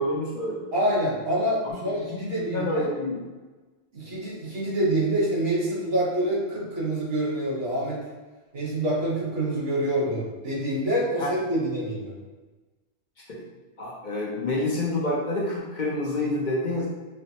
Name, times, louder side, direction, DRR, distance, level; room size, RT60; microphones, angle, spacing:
voice 1, 0.0-0.7 1.6-1.8 2.1-3.1 11.2-11.3 13.3-13.4 13.8-16.9, left 1 dB, 50° left, -5 dB, 0.7 m, -28 dB
voice 2, 0.7-2.9 3.9-8.0 8.5-12.1, right 1 dB, 65° right, -6 dB, 1.4 m, -26 dB
5.1 x 2.0 x 2.8 m, 1.2 s
omnidirectional pair, 1.1 m